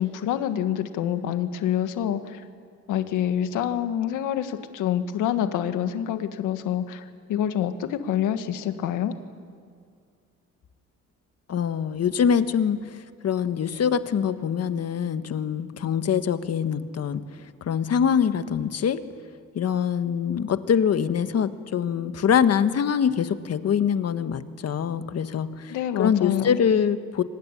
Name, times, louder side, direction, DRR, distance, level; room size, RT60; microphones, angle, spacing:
voice 1, 0.0-2.4 2.9-9.1 25.7-26.6, left 10 dB, 90° left, 8 dB, 1.8 m, -27 dB
voice 2, 11.5-12.9 13.2-17.2 17.6-19.0 19.5-25.7 26.0-27.2, left 7 dB, 55° left, 10 dB, 1.5 m, -24 dB
24.5 x 20.5 x 10.0 m, 2.2 s
cardioid pair, 90°, 30 cm